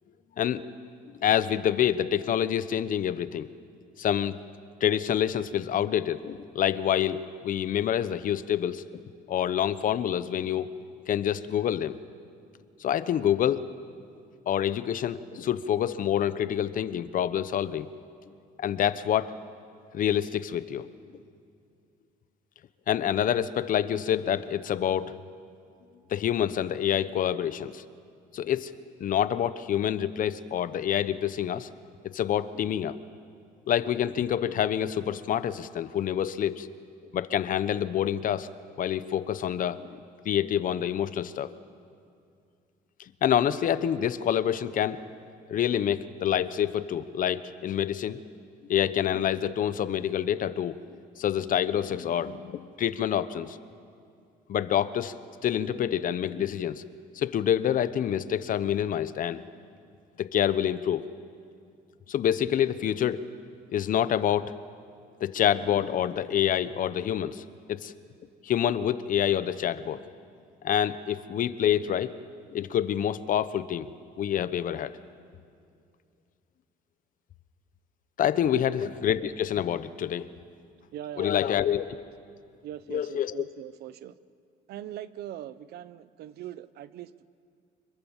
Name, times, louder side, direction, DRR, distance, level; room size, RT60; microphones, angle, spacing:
voice 1, 1.2-3.5 4.0-4.4 4.8-7.2 7.4-8.8 9.3-10.7 11.1-12.0 12.8-13.7 14.5-17.9 18.6-19.3 19.9-20.9 22.9-25.2 26.1-27.8 28.3-28.7 29.0-31.7 32.0-33.0 33.7-36.7 37.1-38.5 38.8-41.5 43.2-45.0 45.5-48.2 48.7-50.8 51.2-53.6 54.5-56.8 57.1-59.4 60.2-61.1 62.1-63.2 63.7-64.6 65.2-67.9 68.4-70.0 70.6-72.1 72.5-73.9 74.2-75.0 78.2-80.3 81.2-81.9 82.9-83.4, left 10 dB, 55° left, 14 dB, 1.0 m, -27 dB
voice 2, 80.9-81.6 81.9-82.0 82.6-84.1 84.7-87.2, right 12 dB, 70° right, 16 dB, 0.8 m, -41 dB
25.5 x 22.5 x 7.3 m, 2.4 s
cardioid pair, 110°, 17 cm